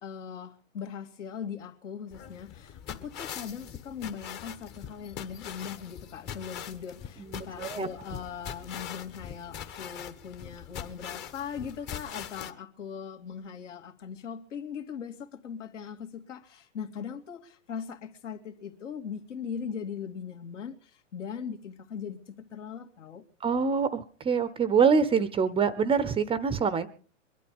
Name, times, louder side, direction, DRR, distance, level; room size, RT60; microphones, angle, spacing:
voice 1, 0.0-23.2, left 7 dB, 70° left, 2.5 m, -40 dB
sound 1, 2.1-12.5, left 8 dB, 25° left, 1.2 m, -42 dB
voice 2, 7.2-7.9 23.4-26.9, right 6 dB, 15° right, 0.7 m, -25 dB
22.5 x 12.0 x 5.3 m
hypercardioid pair, 120°, 39 cm